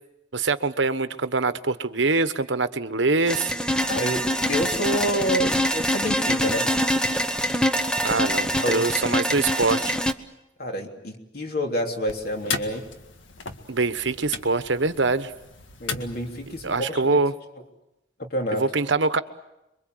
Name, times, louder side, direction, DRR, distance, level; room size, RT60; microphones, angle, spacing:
voice 1, 0.3-3.5 8.0-10.0 13.7-15.3 16.6-17.3 18.5-19.2, right 3 dB, 75° right, 11 dB, 1.2 m, -24 dB
sound 1, 3.3-10.1, equal, 5° left, 0.9 m, -24 dB
voice 2, 3.8-6.7 8.1-8.2 8.5-9.2 10.6-12.9 15.8-17.2 18.2-18.6, equal, 50° left, 2 dB, 3.4 m, -28 dB
sound 2, 12.1-16.9, left 4 dB, 80° left, 1.8 m, -36 dB
27.5 x 23.5 x 7.9 m, 0.91 s
head